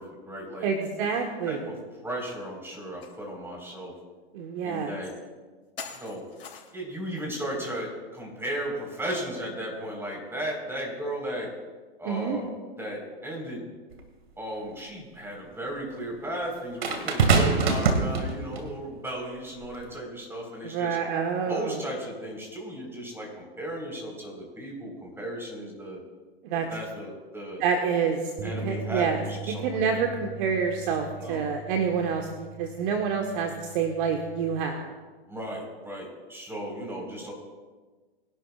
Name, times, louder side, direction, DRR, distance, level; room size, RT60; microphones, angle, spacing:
voice 1, 0.0-0.7 1.5-1.8 2.0-3.9 4.6-5.1 5.9-6.2 6.7-11.5 12.0-13.7 14.4-21.0 21.4-26.0 26.5-27.6 28.4-30.0 31.2-31.4 35.3-37.3, right 1 dB, 10° right, -1 dB, 4.7 m, -35 dB
voice 2, 0.6-1.6 4.3-4.9 12.1-12.4 20.6-21.8 26.4-26.7 27.6-29.2 29.6-34.9, right 6 dB, 55° right, 3 dB, 1.6 m, -28 dB
sound 1, 3.0-3.2 3.7-3.8 4.7-4.8 5.8-6.9, left 6 dB, 80° left, 3.5 m, -42 dB
sound 2, 13.9-14.0 16.8-18.7 19.6-19.8, right 4 dB, 75° right, 2.3 m, -23 dB
sound 3, 28.4-34.6, right 3 dB, 30° right, 1.5 m, -40 dB
23.5 x 11.5 x 2.5 m, 1.3 s
hypercardioid pair, 115°, 31 cm